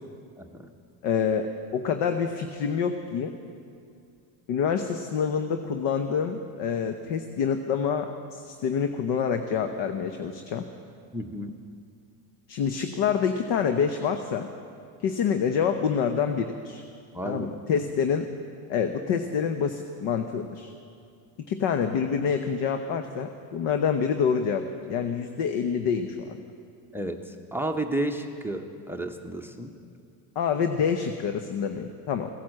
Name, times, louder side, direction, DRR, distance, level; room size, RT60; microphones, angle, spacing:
voice 1, 0.4-0.7 11.1-11.6 17.1-17.5 26.9-29.7, right 1 dB, 5° right, 7 dB, 0.7 m, -32 dB
voice 2, 1.0-1.5 1.7-3.3 4.5-10.6 12.5-14.5 15.0-16.8 17.2-18.3 18.7-20.7 21.5-24.6 24.9-26.4 30.4-32.3, left 7 dB, 60° left, 7 dB, 1.0 m, -27 dB
16.0 x 10.5 x 7.6 m, 2.4 s
supercardioid pair, 105°, 48 cm